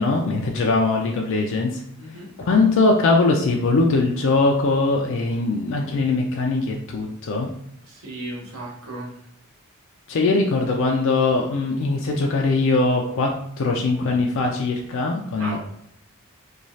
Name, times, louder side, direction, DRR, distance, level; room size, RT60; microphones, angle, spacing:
voice 1, 0.0-1.7 2.4-7.5 10.1-13.3 13.6-15.6, left 3 dB, 60° left, 1 dB, 0.4 m, -21 dB
voice 2, 2.0-2.3 7.9-9.1 15.4-15.6, right 2 dB, 70° right, -3 dB, 0.9 m, -35 dB
3.0 x 2.3 x 2.6 m, 0.70 s
head